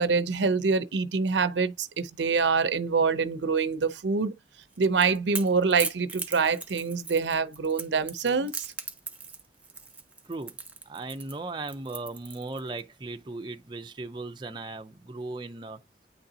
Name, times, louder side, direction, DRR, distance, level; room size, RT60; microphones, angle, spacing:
voice 1, 0.0-4.3 4.8-8.7, right 5 dB, 85° right, 0.6 m, -25 dB
Crackle / Crack, 4.6-12.8, right 4 dB, 10° right, 0.8 m, -39 dB
voice 2, 10.9-15.8, right 2 dB, 25° right, 0.5 m, -37 dB
9.2 x 3.9 x 2.7 m
head